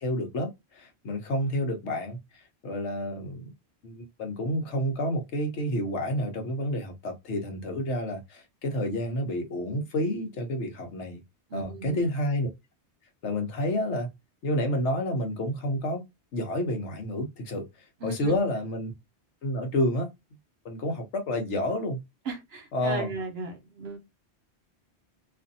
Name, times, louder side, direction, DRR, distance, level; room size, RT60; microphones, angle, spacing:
voice 1, 0.0-3.5 3.8-11.2 11.5-12.5 13.2-14.1 14.4-16.0 16.3-17.7 18.0-18.9 19.4-20.1 20.6-22.0 22.7-23.1, left 1 dB, 85° left, 1.2 m, -29 dB
voice 2, 11.5-12.0 18.0-18.4 22.3-24.0, right 3 dB, 65° right, 1.1 m, -35 dB
2.7 x 2.5 x 2.6 m
omnidirectional pair, 1.2 m